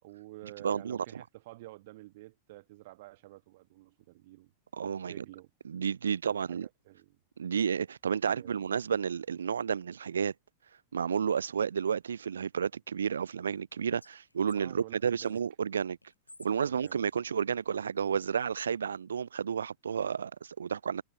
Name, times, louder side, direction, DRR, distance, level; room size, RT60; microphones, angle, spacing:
voice 1, 0.0-4.5 5.1-5.5 6.2-7.2 8.2-8.6 14.5-15.4 16.6-17.0, right 19 dB, 50° right, 7.2 m, -50 dB
voice 2, 0.6-1.2 4.7-5.2 5.6-6.7 7.4-10.3 10.9-16.0 16.4-21.0, right 7 dB, 70° right, 0.4 m, -31 dB
Whispering, 13.4-15.4 16.0-18.2, left 2 dB, 85° left, 7.9 m, -59 dB
figure-of-eight pair, 90°, 0 cm